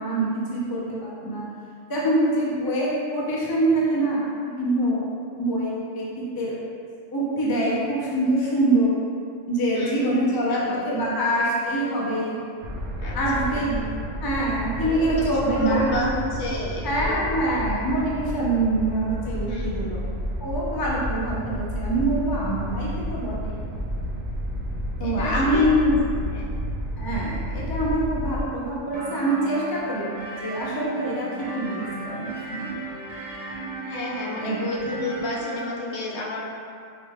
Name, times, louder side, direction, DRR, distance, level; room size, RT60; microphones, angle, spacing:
voice 1, 0.0-1.4 1.9-5.1 5.4-6.5 7.1-8.9 9.5-12.4 13.1-13.8 14.2-16.1 16.8-20.0 20.4-23.6 25.0-26.0 27.0-30.2 30.4-32.7 34.4-34.7, right 1 dB, 25° left, -6 dB, 0.5 m, -25 dB
voice 2, 9.7-11.1 13.0-13.7 14.8-17.3 19.4-19.9 25.0-25.7 26.3-26.5 33.8-36.4, left 1 dB, 65° left, -4 dB, 0.9 m, -31 dB
sound 1, 12.6-28.5, equal, 80° right, 1.0 m, -31 dB
sound 2, 28.9-35.6, right 3 dB, 45° right, 0.3 m, -35 dB
5.8 x 3.2 x 2.3 m, 2.3 s
omnidirectional pair, 1.3 m